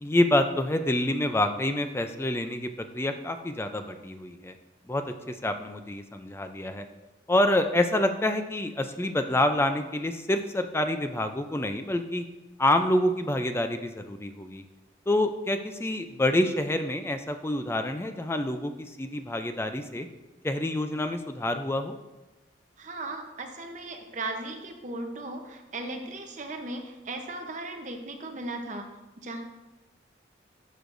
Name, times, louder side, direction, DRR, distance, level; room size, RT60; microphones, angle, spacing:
voice 1, 0.0-4.6 4.9-6.8 7.3-12.2 12.6-14.6 15.1-20.1 20.4-21.9, left 1 dB, 15° left, 7 dB, 0.4 m, -27 dB
voice 2, 22.8-28.8 29.2-29.4, right 2 dB, 40° right, 4 dB, 0.8 m, -37 dB
12.0 x 6.4 x 2.6 m, 1.1 s
head